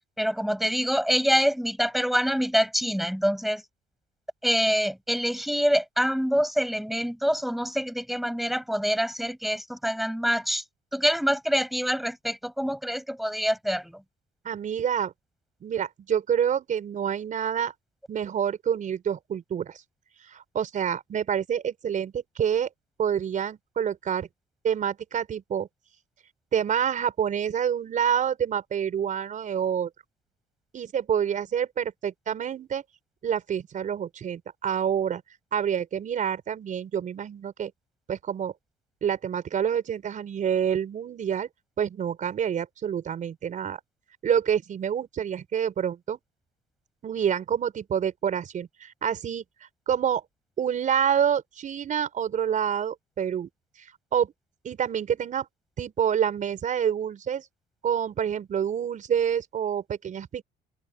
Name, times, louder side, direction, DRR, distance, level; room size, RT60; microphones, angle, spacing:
voice 1, 0.2-3.6 4.4-10.6 10.9-14.0, equal, ahead, 7.2 m, -25 dB
voice 2, 14.4-15.1 15.6-17.7 18.1-19.8 20.3-22.7 23.0-24.3 24.6-25.7 26.5-29.9 30.7-32.8 33.2-35.2 35.5-37.7 38.1-38.5 39.0-41.5 41.8-43.8 44.2-46.2 47.0-49.4 49.9-50.2 50.6-53.5 53.8-54.3 54.6-55.5 55.8-57.5 57.8-60.4, right 8 dB, 50° right, 5.6 m, -27 dB
cardioid pair, 110°, 17 cm